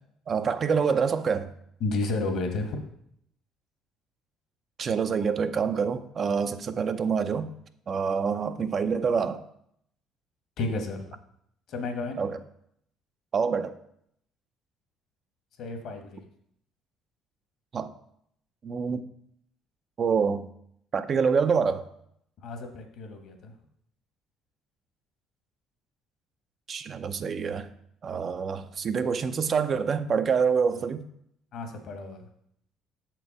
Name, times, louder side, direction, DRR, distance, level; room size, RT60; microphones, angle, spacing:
voice 1, 0.3-1.5 4.8-7.5 7.9-9.4 12.2-12.4 13.3-13.7 17.7-17.9 18.6-19.0 20.0-20.5 20.9-21.8 26.7-27.7 28.0-31.1, right 6 dB, 45° right, 9 dB, 0.5 m, -26 dB
voice 2, 1.8-2.8 10.6-11.0 11.7-12.2 15.6-16.2 22.4-23.5 31.5-32.2, left 3 dB, 65° left, 5 dB, 1.3 m, -32 dB
6.8 x 4.6 x 4.8 m, 0.72 s
hypercardioid pair, 65°, 0 cm